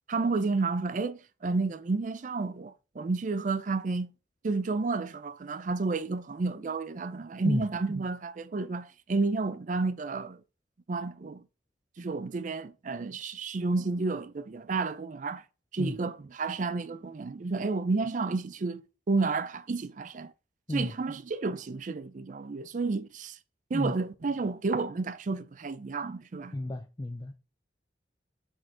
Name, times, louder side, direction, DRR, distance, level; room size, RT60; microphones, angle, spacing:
voice 1, 0.1-4.1 4.4-10.4 10.9-11.4 12.0-15.4 15.7-20.3 20.7-23.4 23.7-26.5, right 3 dB, 45° right, 0.4 m, -31 dB
voice 2, 26.5-27.3, left 1 dB, 20° left, 0.4 m, -31 dB
7.6 x 3.7 x 3.7 m
head